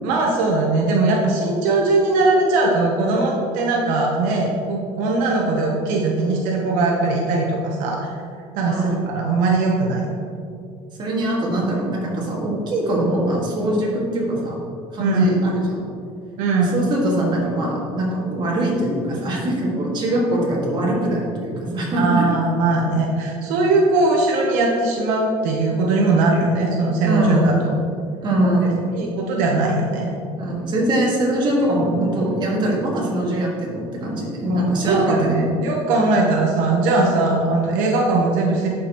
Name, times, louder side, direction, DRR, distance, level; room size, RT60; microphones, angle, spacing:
voice 1, 0.0-8.1 8.5-10.1 15.0-15.4 16.4-16.8 22.0-27.6 28.6-30.2 34.5-38.7, right 3 dB, 80° right, -1 dB, 1.0 m, -20 dB
voice 2, 8.6-9.0 11.0-14.6 14.9-15.8 16.5-22.3 27.0-27.7 28.2-28.9 30.4-35.4, right 1 dB, 35° right, -4 dB, 1.9 m, -22 dB
11.0 x 5.1 x 3.0 m, 2.4 s
cardioid pair, 140°, 13 cm